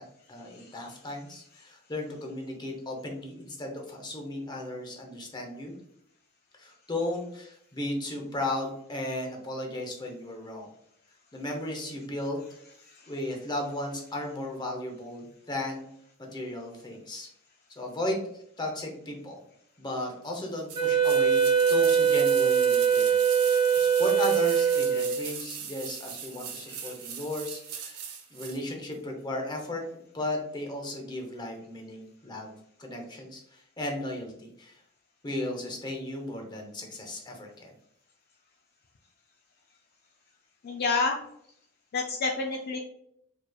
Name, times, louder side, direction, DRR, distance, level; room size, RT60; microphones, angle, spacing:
voice 1, 0.3-5.7 6.6-10.7 11.3-12.4 13.1-15.8 16.3-17.3 17.8-19.4 19.8-21.4 21.7-23.2 23.5-29.8 30.1-34.8 35.2-37.7, left 1 dB, 20° left, 1 dB, 0.8 m, -35 dB
Wind instrument woodwind instrument, 20.7-25.3, right 7 dB, 25° right, 1.2 m, -23 dB
sound 1, 20.7-28.6 28.9-29.0, right 7 dB, 85° right, 0.7 m, -39 dB
voice 2, 40.6-41.2 41.9-42.8, left 4 dB, 45° left, 1 dB, 0.4 m, -28 dB
4.7 x 3.0 x 2.3 m, 0.71 s
head